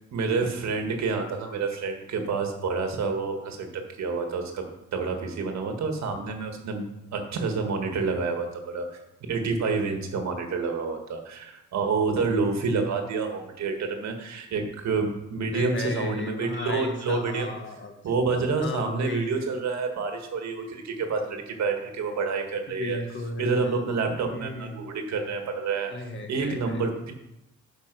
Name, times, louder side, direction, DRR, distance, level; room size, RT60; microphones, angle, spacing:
voice 1, 0.1-4.7 4.9-6.9 7.1-9.0 9.3-17.5 18.0-23.0 23.4-25.9 26.3-27.1, right 4 dB, 60° right, 4 dB, 1.8 m, -28 dB
voice 2, 15.5-17.9 18.6-19.4 22.8-23.9 24.3-24.7 25.9-26.8, left 2 dB, 40° left, 5 dB, 1.2 m, -35 dB
10.5 x 5.2 x 6.2 m, 0.86 s
cardioid pair, 170°, 31 cm